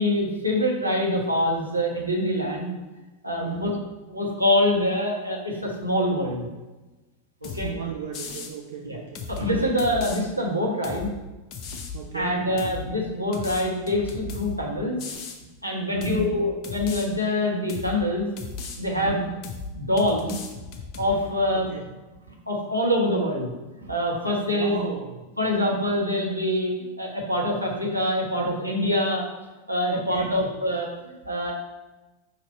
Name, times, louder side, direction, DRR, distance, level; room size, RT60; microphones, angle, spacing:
voice 1, 0.0-2.7 3.2-3.7 4.1-6.5 7.4-7.7 8.8-9.0 9.3-11.1 12.1-15.0 15.6-18.3 18.8-19.2 19.7-20.3 21.0-21.7 22.5-23.5 23.8-24.9 25.4-29.2 29.7-31.5, left 1 dB, 85° right, -2 dB, 1.2 m, -25 dB
voice 2, 3.4-3.8 7.4-9.7 11.9-12.5 15.9-16.3 19.0-19.5 21.5-21.9 24.5-25.2 29.9-30.4, right 6 dB, 55° right, 2 dB, 0.6 m, -34 dB
sound 1, 7.4-7.7 8.1-8.5 9.1-10.2 10.8-11.1 11.5-12.0 12.6-12.8 13.3-14.6 15.0-15.4 16.0-16.3 16.6-17.1 17.7-18.0 18.4-18.8 19.4-19.7 20.0-21.1, left 5 dB, 40° left, 0.8 m, -36 dB
4.8 x 4.3 x 5.2 m, 1.1 s
figure-of-eight pair, 90°, 0 cm